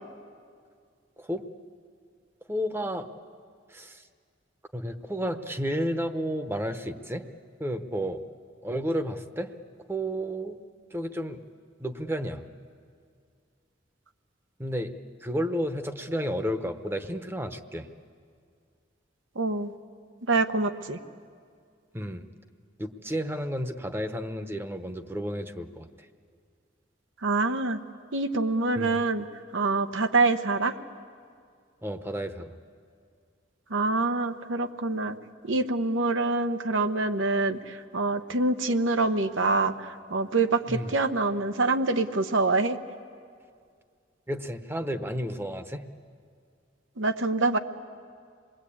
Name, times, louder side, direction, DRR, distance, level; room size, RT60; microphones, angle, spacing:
voice 1, 2.5-3.1 3.7-4.1 4.7-7.2 7.6-8.2 8.6-9.5 9.9-10.6 10.9-11.4 11.8-12.4 14.6-14.9 15.2-17.9 21.9-22.3 22.8-25.9 28.8-29.0 31.8-32.5 40.7-40.9 44.3-45.8, equal, 10° right, 8 dB, 0.9 m, -31 dB
voice 2, 19.3-19.7 20.3-21.0 27.2-27.8 28.1-29.3 29.5-30.7 33.7-35.2 35.4-42.8 47.0-47.6, right 3 dB, 85° right, 9 dB, 1.1 m, -25 dB
27.5 x 21.0 x 8.6 m, 2.2 s
head